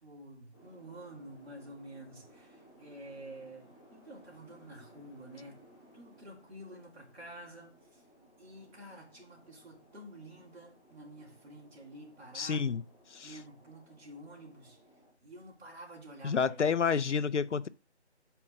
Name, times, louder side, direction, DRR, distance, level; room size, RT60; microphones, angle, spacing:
voice 1, 0.0-5.6 5.9-8.0 8.4-12.8 13.2-14.8 15.2-16.7, right 1 dB, 60° right, 2.9 m, -50 dB
sound 1, 0.5-15.1, equal, 10° left, 2.5 m, -60 dB
voice 2, 12.3-12.8 13.1-13.3 16.2-17.7, left 6 dB, 85° left, 0.6 m, -29 dB
5.7 x 4.5 x 5.7 m
figure-of-eight pair, 170°, 35 cm